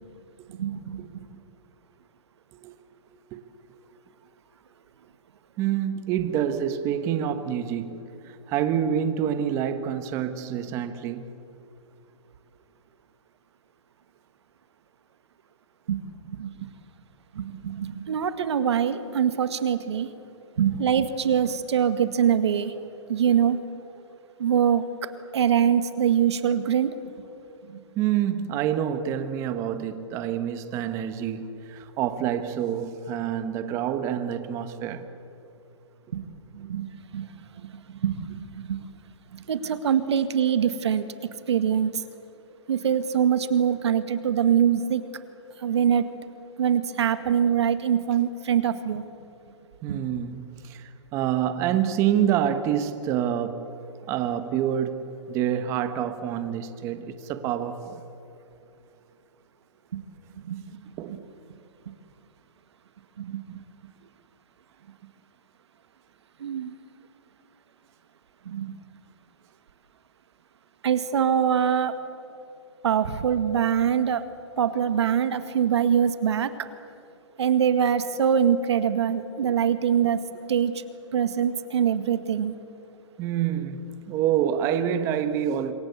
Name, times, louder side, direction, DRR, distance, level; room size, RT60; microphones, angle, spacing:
voice 1, 0.6-1.1 15.9-16.0 16.3-16.7 17.3-20.1 20.6-22.7 23.1-23.6 24.4-24.8 25.3-26.9 27.7-27.8 36.1-36.2 36.5-36.9 37.1-37.3 38.0-38.8 39.3-41.1 41.5-42.0 42.7-45.0 45.6-46.1 46.6-49.0 49.9-50.0 59.9-60.0 60.4-61.2 63.2-63.6 66.4-66.7 68.5-68.7 70.8-72.0 72.8-74.2 74.6-76.5 77.4-80.2 80.5-80.8 81.1-82.6, right 8 dB, 65° right, 2.0 m, -24 dB
voice 2, 5.6-8.1 8.5-11.3 27.9-35.1 49.8-53.7 54.1-58.0 61.0-61.3 79.4-79.5 83.2-85.7, right 9 dB, 20° right, 1.1 m, -27 dB
26.5 x 22.5 x 8.2 m
hypercardioid pair, 170°, 16 cm